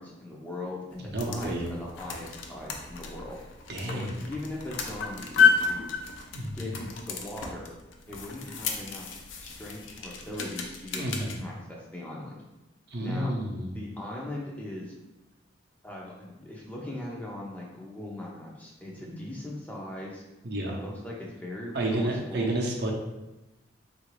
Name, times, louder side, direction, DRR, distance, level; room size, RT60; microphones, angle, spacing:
voice 1, 0.0-3.4 3.8-5.9 6.5-7.7 8.1-9.1 9.4-11.1 11.4-12.4 13.0-13.3 13.7-14.9 15.8-20.2 20.7-22.6, left 1 dB, 10° left, -3 dB, 0.4 m, -39 dB
sound 1, 0.9-11.4, left 5 dB, 75° left, 0.5 m, -31 dB
voice 2, 1.0-1.7 3.7-4.1 6.3-6.8 11.0-11.4 12.9-13.7 19.0-19.2 20.4-20.8 21.7-22.9, right 1 dB, 55° right, -1 dB, 0.6 m, -30 dB
3.8 x 2.5 x 3.1 m, 0.98 s
head